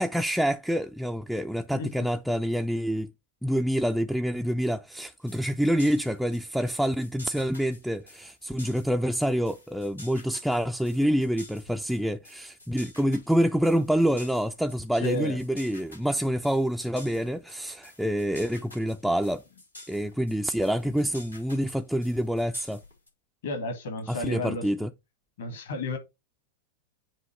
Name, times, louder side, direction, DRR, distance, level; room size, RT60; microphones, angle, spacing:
voice 1, 0.0-3.1 3.4-19.4 19.9-22.8 24.1-24.9, equal, ahead, 0.4 m, -27 dB
sound 1, 5.0-23.1, left 1 dB, 85° left, 3.7 m, -50 dB
voice 2, 14.9-15.4 23.4-24.7 25.4-26.0, left 2 dB, 60° left, 1.6 m, -32 dB
7.4 x 2.8 x 5.7 m
figure-of-eight pair, 90°, 0 cm